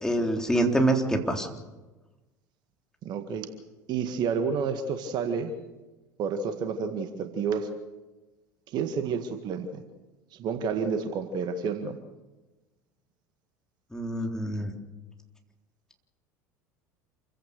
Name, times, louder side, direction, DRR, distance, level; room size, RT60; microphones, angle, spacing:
voice 1, 0.0-1.5 13.9-14.7, right 1 dB, 5° left, 2 dB, 3.7 m, -25 dB
voice 2, 3.0-3.5 3.9-5.5 6.2-7.7 8.7-9.8 10.3-12.0, right 6 dB, 50° right, 7 dB, 1.9 m, -30 dB
28.0 x 16.0 x 6.8 m, 1.1 s
figure-of-eight pair, 70°, 9 cm